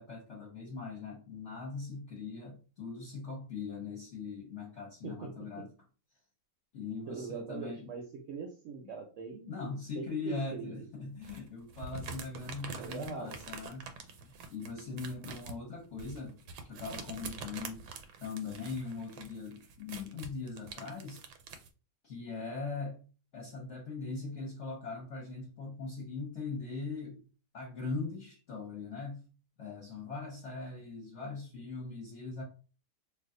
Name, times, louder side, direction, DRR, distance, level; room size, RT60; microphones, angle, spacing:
voice 1, 0.0-5.7 6.7-7.9 9.5-13.9 14.2-16.4 16.7-17.8 18.2-21.2 22.0-23.0 23.3-27.2 27.5-29.3 29.6-32.4, left 4 dB, 55° left, -2 dB, 1.0 m, -40 dB
voice 2, 7.1-8.0 8.3-10.9 12.7-13.4, right 5 dB, 65° right, 3 dB, 0.8 m, -42 dB
sound 1, 11.2-21.7, right 5 dB, 85° right, 1.2 m, -46 dB
2.6 x 2.3 x 3.6 m, 0.36 s
omnidirectional pair, 1.7 m